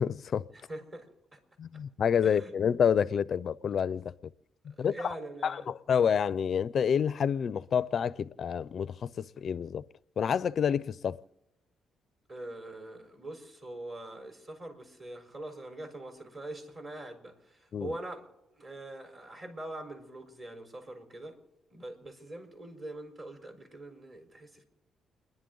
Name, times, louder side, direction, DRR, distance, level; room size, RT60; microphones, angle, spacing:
voice 1, 0.0-0.5 1.6-4.1 4.7-5.1 5.4-9.8 10.2-11.2 17.7-17.9, left 7 dB, 55° left, 0.4 m, -28 dB
voice 2, 0.5-1.4 2.2-2.5 4.8-5.7 12.3-18.3 18.5-21.4 21.7-24.6, right 1 dB, 35° right, 4.4 m, -43 dB
30.0 x 11.0 x 3.9 m
cardioid pair, 90°, 0 cm